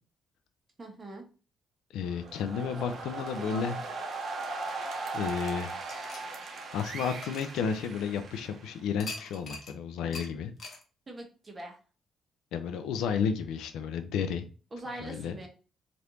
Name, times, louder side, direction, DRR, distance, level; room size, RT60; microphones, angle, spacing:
voice 1, 0.8-1.3 11.1-11.8 14.7-15.5, right 1 dB, 25° right, 1 dB, 1.1 m, -42 dB
voice 2, 1.9-3.8 5.1-5.7 6.7-10.5 12.5-14.5 15.0-15.3, left 6 dB, 90° left, 9 dB, 0.4 m, -32 dB
sound 1, 2.0-8.9, right 3 dB, 55° right, 0.7 m, -38 dB
sound 2, 5.9-8.3 9.0-9.8 10.1-10.3 10.6-10.8, left 3 dB, 55° left, 0.9 m, -44 dB
3.3 x 2.5 x 2.9 m, 0.35 s
cardioid pair, 95°, 0 cm